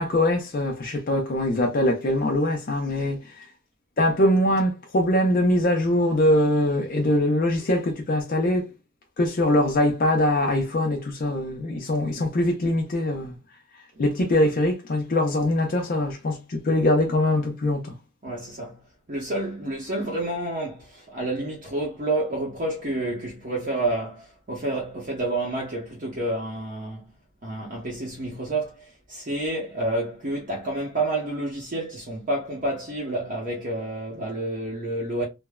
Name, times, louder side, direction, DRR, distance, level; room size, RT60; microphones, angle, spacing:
voice 1, 0.0-3.2 4.0-8.6 9.2-13.3 14.0-17.9, left 1 dB, 45° left, 0.5 m, -22 dB
voice 2, 18.2-18.8 19.1-27.1 27.4-35.2, right 2 dB, 40° right, 0.7 m, -29 dB
3.3 x 2.0 x 2.2 m
head